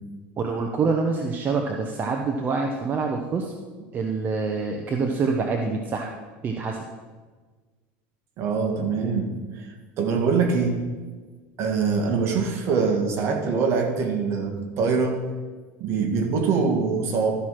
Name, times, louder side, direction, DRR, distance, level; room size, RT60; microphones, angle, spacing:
voice 1, 0.4-3.5 3.9-6.1 6.4-6.9, right 4 dB, 35° right, 2 dB, 0.9 m, -26 dB
voice 2, 8.4-9.7 10.0-10.8 11.6-15.2 15.8-17.3, right 5 dB, 50° right, 4 dB, 1.8 m, -24 dB
13.0 x 4.8 x 5.8 m, 1.4 s
supercardioid pair, 110°, 6 cm